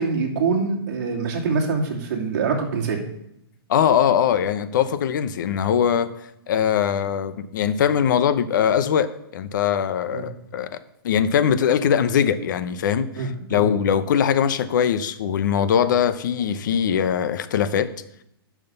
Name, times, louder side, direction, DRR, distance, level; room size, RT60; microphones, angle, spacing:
voice 1, 0.0-3.1 10.1-10.3 13.1-13.6, right 4 dB, 45° right, 2.6 m, -24 dB
voice 2, 3.7-6.1 6.5-10.8 11.0-17.9, left 8 dB, 50° left, 0.8 m, -21 dB
11.0 x 6.2 x 6.8 m
hypercardioid pair, 160°, 13 cm